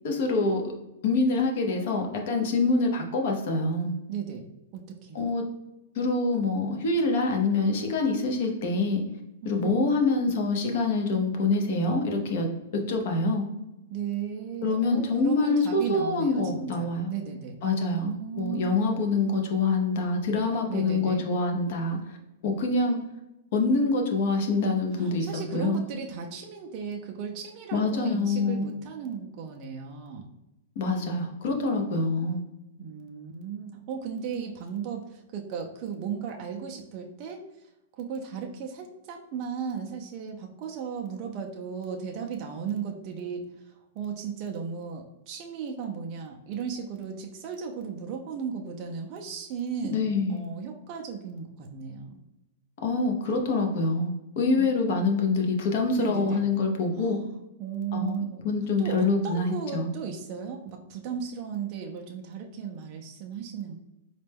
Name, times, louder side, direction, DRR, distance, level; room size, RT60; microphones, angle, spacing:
voice 1, 0.0-0.6 1.0-3.9 5.1-5.4 5.9-9.0 9.4-12.5 12.9-13.5 14.6-17.1 17.6-18.1 18.3-22.2 22.4-23.0 23.5-25.8 27.7-28.7 30.8-32.4 49.9-50.4 52.8-57.2 57.9-59.9, left 3 dB, 45° left, 3 dB, 0.7 m, -25 dB
voice 2, 4.1-4.5 4.7-5.3 9.4-9.9 10.3-10.4 13.9-19.0 20.7-21.3 24.9-30.3 32.8-37.4 38.0-50.0 50.3-52.2 54.6-54.7 56.0-56.4 56.9-58.5 58.8-63.8, right 7 dB, 30° right, 1 dB, 0.4 m, -36 dB
4.1 x 2.2 x 3.4 m, 0.98 s
supercardioid pair, 170°, 0 cm